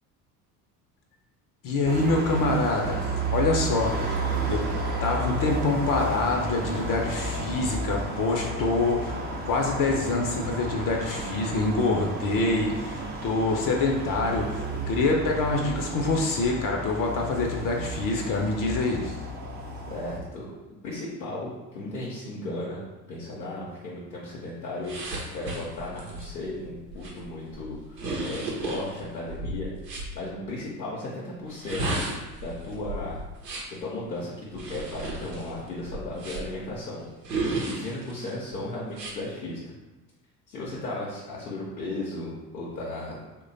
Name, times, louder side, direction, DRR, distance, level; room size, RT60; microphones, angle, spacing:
voice 1, 1.6-3.0 3.3-4.2 4.5-4.6 5.0-19.2, left 3 dB, 40° left, 1 dB, 0.6 m, -26 dB
sound 1, 1.8-20.2, right 2 dB, 20° right, 0.5 m, -32 dB
voice 2, 11.1-11.6 19.9-20.5 20.8-22.8 23.1-29.7 30.1-32.1 32.4-33.2 33.8-37.0 37.4-39.6 40.5-43.2, left 2 dB, 90° left, -6 dB, 0.7 m, -35 dB
sound 2, 24.8-30.1 31.5-33.8 34.5-36.6 37.2-38.3 38.9-39.1, right 2 dB, 90° right, 0.8 m, -34 dB
3.1 x 2.2 x 3.8 m, 1.1 s
hypercardioid pair, 65°, 49 cm